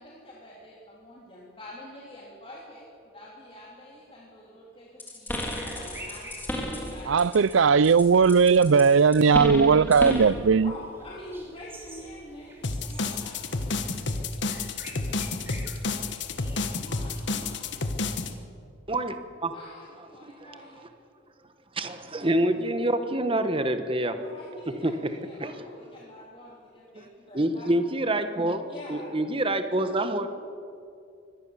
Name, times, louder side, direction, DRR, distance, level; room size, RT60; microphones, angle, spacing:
voice 1, 0.0-8.1 10.6-13.4 15.0-15.5 16.7-17.8 19.5-20.9 24.1-27.8 28.7-29.2, left 1 dB, 30° left, 2.9 m, -46 dB
sound 1, 5.0-7.5 7.8-10.4, equal, 10° left, 3.1 m, -32 dB
sound 2, 5.4-17.9, right 1 dB, 10° right, 3.2 m, -49 dB
voice 2, 7.1-10.7, right 5 dB, 75° right, 0.5 m, -18 dB
sound 3, 12.6-18.3, left 3 dB, 60° left, 1.4 m, -30 dB
voice 3, 18.9-19.5 21.7-24.2 24.8-25.5 27.0-27.1 27.3-28.6 28.9-30.3, right 1 dB, 25° right, 1.3 m, -26 dB
24.0 x 18.5 x 7.2 m
head